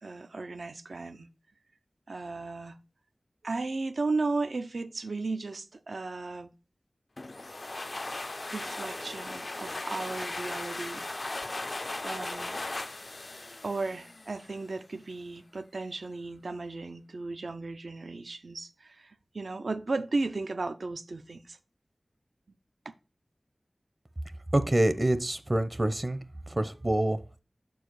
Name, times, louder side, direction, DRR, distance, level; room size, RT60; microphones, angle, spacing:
voice 1, 0.0-1.3 2.1-2.8 3.4-6.5 8.5-11.4 12.0-12.6 13.6-21.6 22.9-23.0, right 3 dB, 85° right, 0.5 m, -35 dB
sound 1, 7.2-14.6, left 2 dB, 55° left, 0.4 m, -37 dB
voice 2, 24.5-26.2 26.5-27.4, right 1 dB, 35° right, 0.6 m, -26 dB
6.5 x 4.7 x 4.6 m
wide cardioid pair, 50°, 0 cm